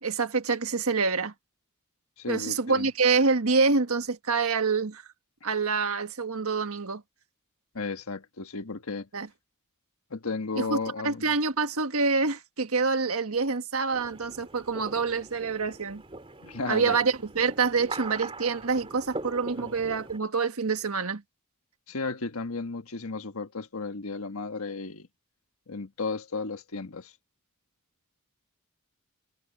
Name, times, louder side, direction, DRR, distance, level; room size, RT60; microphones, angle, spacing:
voice 1, 0.0-1.3 2.3-5.0 5.4-7.0 9.1-9.3 10.5-10.8 11.0-16.0 16.7-21.2, right 4 dB, 75° right, 1.5 m, -26 dB
voice 2, 2.2-2.9 7.7-9.1 10.1-11.2 16.4-16.9 19.6-19.7 21.9-25.1 25.7-27.1, left 3 dB, 75° left, 1.5 m, -34 dB
sound 1, 13.9-20.2, right 2 dB, 25° right, 3.2 m, -41 dB
head